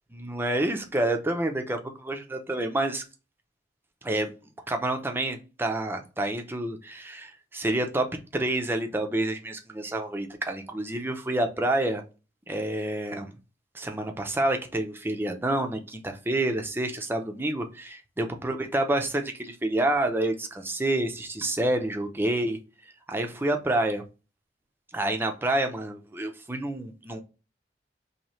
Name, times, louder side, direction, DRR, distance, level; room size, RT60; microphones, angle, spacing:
voice 1, 0.1-3.0 4.0-4.3 4.7-8.1 8.3-12.0 12.5-13.3 13.7-22.6 23.1-24.0 24.9-27.2, right 1 dB, 15° right, 0.5 m, -28 dB
3.1 x 2.7 x 4.1 m
head